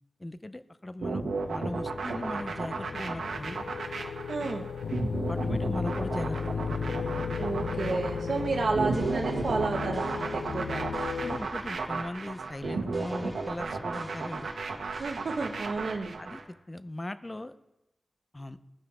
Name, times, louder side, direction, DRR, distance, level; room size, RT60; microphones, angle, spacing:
voice 1, 0.2-3.7 5.3-6.9 10.4-10.8 11.2-14.5 16.2-17.6 18.3-18.6, left 1 dB, 15° left, 13 dB, 0.4 m, -39 dB
sound 1, 1.0-16.4, right 4 dB, 75° right, 1.2 m, -34 dB
sound 2, 1.1-11.4, left 5 dB, 65° left, 0.5 m, -35 dB
voice 2, 4.3-4.7 7.4-10.9 15.0-16.2, right 4 dB, 60° right, 2 dB, 0.9 m, -31 dB
sound 3, 8.4-16.3, right 1 dB, 10° right, 2.1 m, -51 dB
13.5 x 6.1 x 4.8 m, 0.93 s
wide cardioid pair, 155°, 0 cm